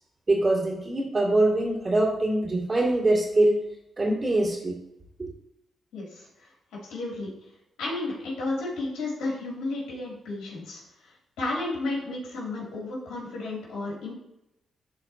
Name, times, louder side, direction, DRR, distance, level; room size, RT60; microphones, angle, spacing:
voice 1, 0.3-3.6 4.0-4.7 5.2-5.3, right 2 dB, 40° right, -5 dB, 2.1 m, -23 dB
voice 2, 5.9-6.3 6.9-7.3 7.8-11.1 11.4-14.1, left 2 dB, 90° left, -6 dB, 2.8 m, -32 dB
11.5 x 4.1 x 2.8 m, 0.82 s
cardioid pair, 60°, 0 cm